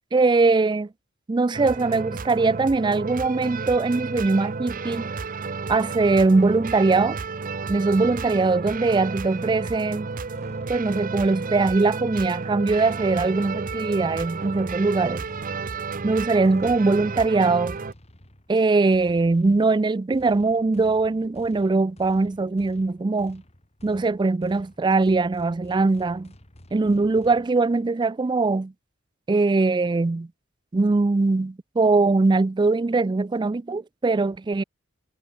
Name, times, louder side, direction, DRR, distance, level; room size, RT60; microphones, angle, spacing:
voice 1, 0.1-0.9 1.3-5.1 5.7-7.2 7.7-10.1 10.7-15.2 16.0-17.8 18.5-23.4 23.8-26.3 26.7-28.7 29.3-30.3 30.7-34.6, right 3 dB, 20° right, 0.4 m, -21 dB
sound 1, 1.5-17.9, right 4 dB, 45° right, 0.7 m, -32 dB
sound 2, 7.9-9.6 10.3-12.1 12.8-14.4 15.2-27.5, left 1 dB, 30° left, 3.5 m, -51 dB
head